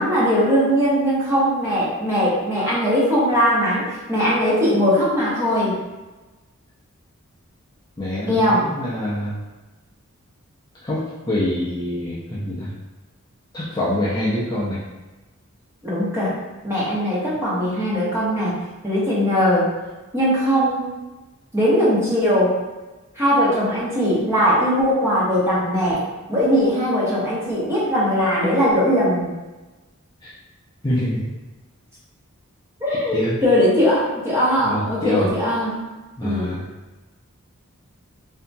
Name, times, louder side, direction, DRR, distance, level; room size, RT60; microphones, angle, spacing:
voice 1, 0.0-5.8 8.2-8.7 15.8-16.3 16.6-19.7 20.1-20.9 21.5-22.6 23.2-26.0 26.3-29.3 32.8-35.8 36.2-36.5, equal, 10° right, -8 dB, 0.8 m, -20 dB
voice 2, 8.0-9.3 10.8-12.7 13.5-14.8 30.2-30.3 30.8-31.2 33.1-33.4 34.6-35.3 36.2-36.7, left 1 dB, 20° left, -8 dB, 0.4 m, -25 dB
2.8 x 2.6 x 2.2 m, 1.1 s
head